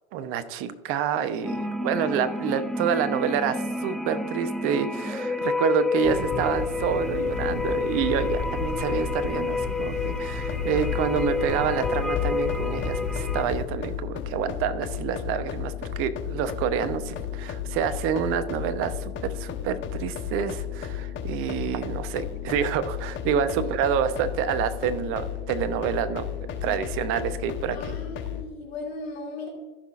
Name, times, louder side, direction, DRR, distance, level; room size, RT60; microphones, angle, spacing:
voice 1, 0.1-26.3 26.6-28.0, right 8 dB, 45° right, 12 dB, 0.8 m, -28 dB
sound 1, 1.4-13.4, left 3 dB, ahead, 0.3 m, -30 dB
sound 2, 6.0-13.6, left 5 dB, 20° left, 1.5 m, -33 dB
sound 3, 10.4-28.4, left 10 dB, 40° left, 1.1 m, -34 dB
voice 2, 27.7-29.5, left 3 dB, 80° left, -1 dB, 2.6 m, -37 dB
14.5 x 5.9 x 2.5 m, 1.3 s
hypercardioid pair, 95°, 31 cm